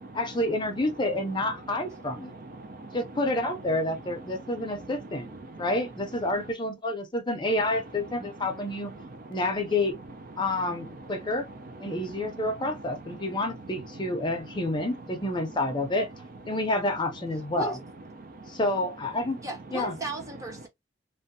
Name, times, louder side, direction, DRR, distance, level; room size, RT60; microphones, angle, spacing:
voice 1, 0.1-2.3 2.9-5.3 5.6-8.9 9.3-10.0 10.4-11.5 11.8-16.1 16.5-17.8 18.5-19.4 19.7-19.9, left 1 dB, 25° left, 0.5 m, -29 dB
voice 2, 2.1-3.0 4.3-5.7 6.3-6.4 8.2-8.3 9.0-9.3 10.6-12.5 13.1-14.2 14.5-14.6 18.2-18.6, right 2 dB, 50° right, 0.5 m, -44 dB
voice 3, 19.4-20.7, right 2 dB, 20° right, 0.7 m, -36 dB
2.6 x 2.1 x 2.6 m
head